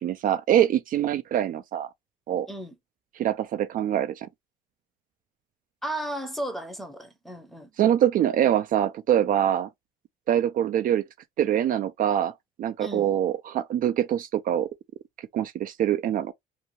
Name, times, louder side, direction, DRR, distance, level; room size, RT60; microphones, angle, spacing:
voice 1, 0.0-1.9 2.3-2.5 3.2-4.3 7.8-9.7 10.3-11.0 11.4-12.3 12.6-14.7 15.3-16.3, right 10 dB, 55° right, 0.4 m, -24 dB
voice 2, 5.8-7.9 12.8-13.1, right 1 dB, ahead, 0.7 m, -34 dB
2.7 x 2.2 x 2.9 m
cardioid pair, 110°, 17 cm